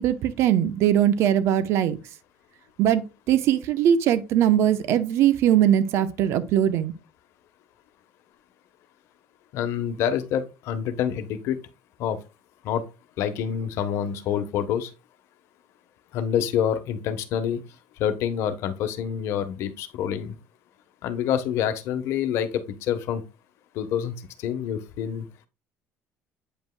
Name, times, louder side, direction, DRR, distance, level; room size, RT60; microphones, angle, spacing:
voice 1, 0.0-2.0 2.8-6.9, right 10 dB, 65° right, 0.8 m, -21 dB
voice 2, 9.5-11.6 12.0-12.2 12.6-12.9 13.2-14.9 16.1-17.6 18.0-20.3 21.0-23.2 23.7-25.3, left 9 dB, 65° left, 1.1 m, -27 dB
8.8 x 5.4 x 2.2 m
cardioid pair, 130°, 5 cm